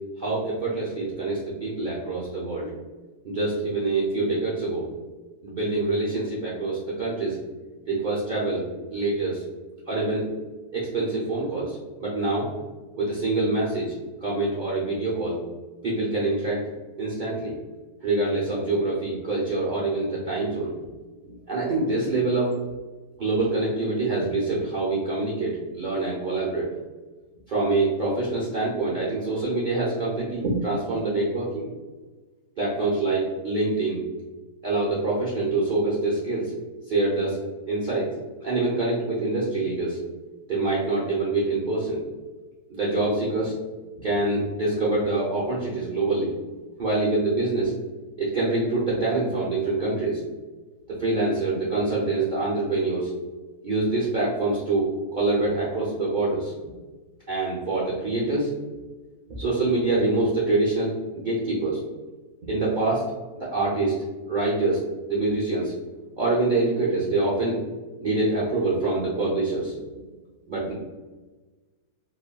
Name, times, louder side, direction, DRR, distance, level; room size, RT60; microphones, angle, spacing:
voice 1, 0.2-2.7 3.2-4.8 5.4-7.4 7.9-8.6 8.9-9.4 9.9-10.3 10.7-12.5 13.0-13.9 14.2-15.4 15.8-16.6 17.0-17.5 18.0-20.7 21.2-22.5 23.2-26.7 27.5-31.6 32.6-34.0 34.6-36.5 36.9-37.4 37.7-38.1 38.4-40.0 40.5-42.0 42.7-43.5 44.0-46.3 46.8-47.7 48.2-50.2 51.0-53.1 53.6-56.5 57.3-58.5 59.4-61.8 62.5-63.0 63.4-63.9 64.3-64.8 65.1-65.7 66.2-67.6 68.0-70.1 70.5-70.7, right 2 dB, 75° right, -7 dB, 0.4 m, -25 dB
3.4 x 2.3 x 2.2 m, 1.3 s
omnidirectional pair, 1.6 m